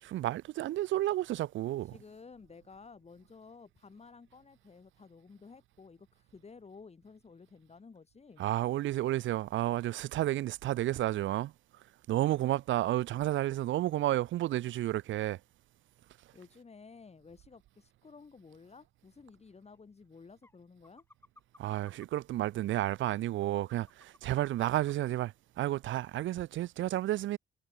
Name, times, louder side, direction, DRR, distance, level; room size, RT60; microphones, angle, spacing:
voice 1, 0.0-1.9 8.4-15.4 21.6-27.4, right 14 dB, 75° right, 0.7 m, -31 dB
voice 2, 1.8-8.4 16.3-21.0, left 4 dB, 30° left, 6.5 m, -54 dB
sound 1, 19.7-19.8 20.4-20.6 20.8-22.1 22.6-22.7 23.1-25.2 25.7-25.8 26.1-26.2, left 2 dB, 10° left, 6.9 m, -59 dB
cardioid pair, 90°, 20 cm